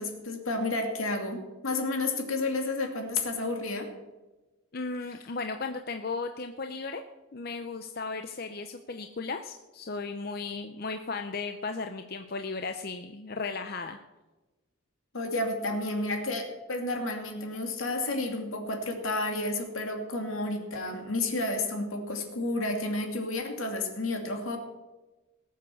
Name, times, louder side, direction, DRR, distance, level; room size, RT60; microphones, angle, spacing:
voice 1, 0.0-3.9 15.1-24.6, left 2 dB, 80° left, 4 dB, 2.6 m, -31 dB
voice 2, 4.7-7.0 7.3-14.0, left 4 dB, 45° left, 6 dB, 0.7 m, -35 dB
18.5 x 7.5 x 7.0 m, 1.1 s
head